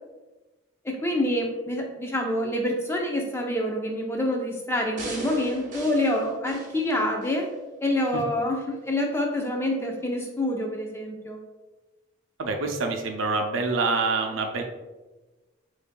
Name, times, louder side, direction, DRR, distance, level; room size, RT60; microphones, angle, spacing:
voice 1, 0.8-7.5 7.8-11.4, left 1 dB, 15° left, 1 dB, 0.5 m, -27 dB
sound 1, 5.0-7.5 8.0-8.1, right 2 dB, 45° right, 1.0 m, -39 dB
voice 2, 12.4-14.6, right 3 dB, 80° right, 4 dB, 0.5 m, -26 dB
6.7 x 2.6 x 2.2 m, 1.2 s
head